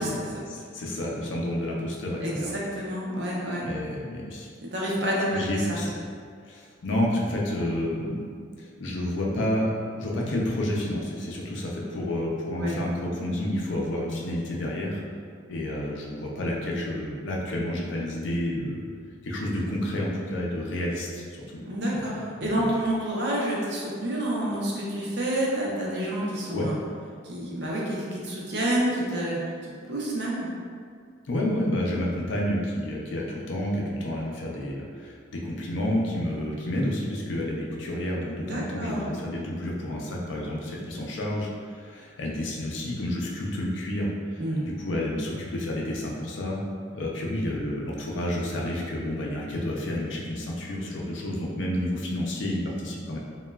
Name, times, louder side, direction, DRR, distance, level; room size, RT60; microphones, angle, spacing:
voice 1, 0.0-2.5 3.6-4.5 5.3-5.9 6.5-8.3 8.6-9.7 10.0-15.0 15.5-18.8 19.2-21.2 21.5-21.6 21.9-22.7 26.5-26.7 31.3-46.6 46.9-53.2, left 1 dB, 75° left, -2 dB, 0.4 m, -30 dB
voice 2, 2.2-3.6 4.7-5.4 5.7-5.8 12.6-12.8 21.7-26.7 27.2-30.5 38.4-39.1 44.4-44.7, right 1 dB, 60° right, -5 dB, 0.6 m, -28 dB
2.9 x 2.2 x 2.2 m, 2.1 s
head